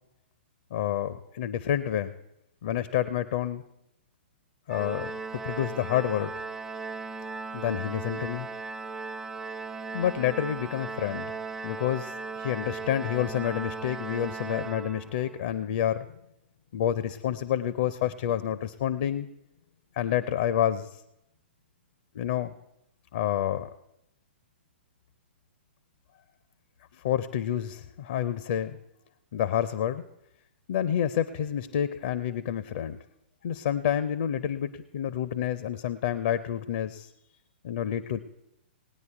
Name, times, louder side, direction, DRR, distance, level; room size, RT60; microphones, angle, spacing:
voice 1, 0.7-2.1 2.6-3.6 4.7-5.1 5.4-6.3 7.5-8.5 9.9-11.3 11.6-16.1 16.7-19.3 20.0-20.9 22.1-22.5 23.1-23.7 27.0-28.8 29.3-30.0 30.7-33.0 33.4-37.1 37.6-38.2, left 10 dB, 45° left, 14 dB, 0.5 m, -28 dB
Organ, 4.7-15.4, right 4 dB, 10° right, 0.4 m, -37 dB
18.5 x 9.6 x 4.6 m, 0.87 s
figure-of-eight pair, 115°, 6 cm